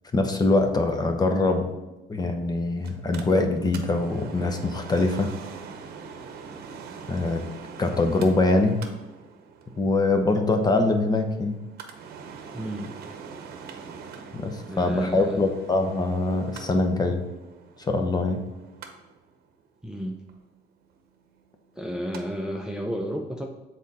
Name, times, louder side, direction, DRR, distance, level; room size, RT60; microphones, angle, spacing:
voice 1, 0.1-1.7 2.1-5.3 7.1-7.4 7.8-8.8 9.8-11.6 14.3-17.2 17.9-18.4, left 2 dB, 25° left, 5 dB, 0.8 m, -23 dB
Mechanical fan, 2.8-22.2 22.6-22.7, right 5 dB, 65° right, 0.8 m, -44 dB
voice 2, 12.5-13.0 14.6-15.4 19.8-20.2 21.7-23.5, equal, 5° right, 1 dB, 0.5 m, -32 dB
7.2 x 4.2 x 4.1 m, 1.1 s
cardioid pair, 110°, 17 cm